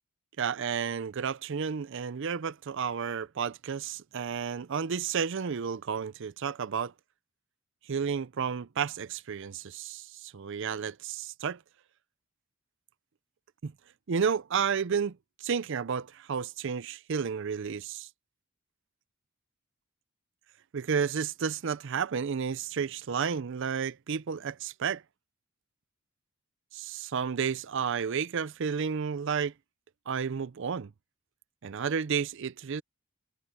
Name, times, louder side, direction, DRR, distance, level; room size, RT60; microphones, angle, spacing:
voice 1, 0.4-6.9 7.9-11.6 13.6-13.7 14.1-15.1 15.4-18.1 20.7-25.0 26.7-29.5 30.1-30.9 31.6-32.8, right 6 dB, 55° right, 0.5 m, -31 dB
head